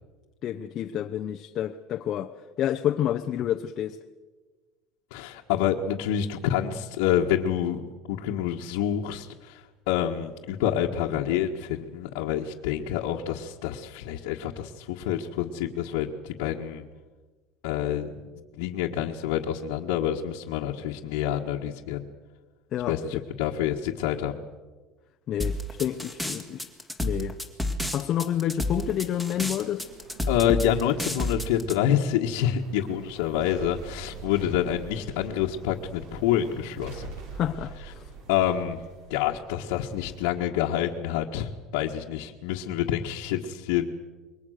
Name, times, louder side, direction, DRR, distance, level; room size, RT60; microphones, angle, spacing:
voice 1, 0.4-4.0 22.7-23.2 25.3-26.7 27.0-27.4 27.9-29.8 37.4-38.0, left 11 dB, 40° left, 0.9 m, -29 dB
voice 2, 5.1-16.8 17.6-18.1 18.6-22.0 22.9-24.4 30.3-37.1 38.3-38.8 39.1-43.8, left 10 dB, 85° left, 1.7 m, -27 dB
sound 1, 25.4-31.7, left 1 dB, 5° right, 2.1 m, -30 dB
sound 2, 29.0-40.2, right 3 dB, 60° right, 6.1 m, -45 dB
28.0 x 22.5 x 6.6 m
cardioid pair, 155°, 0 cm